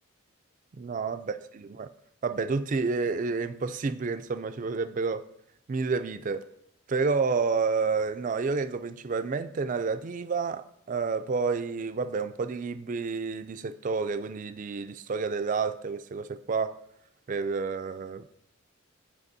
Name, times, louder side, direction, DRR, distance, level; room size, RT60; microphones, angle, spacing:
voice 1, 0.8-1.9 2.2-5.2 5.7-6.5 6.9-16.7 17.3-18.3, right 4 dB, 40° right, 0.3 m, -29 dB
12.5 x 5.1 x 2.7 m
head